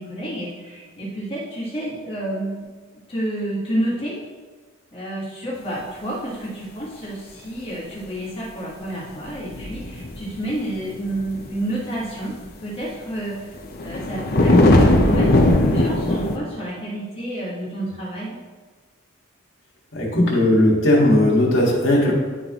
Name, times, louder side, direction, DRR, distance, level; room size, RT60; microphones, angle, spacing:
voice 1, 0.0-2.7 3.1-4.2 4.9-12.4 12.6-13.4 13.8-18.4, right 1 dB, 25° left, -6 dB, 1.5 m, -29 dB
sound 1, 9.4-10.5 11.1-11.3 12.3-12.4 13.6-16.4, left 1 dB, 45° left, 0.7 m, -17 dB
voice 2, 19.9-22.1, left 1 dB, 65° left, -3 dB, 1.6 m, -17 dB
10.5 x 3.9 x 3.0 m, 1.4 s
head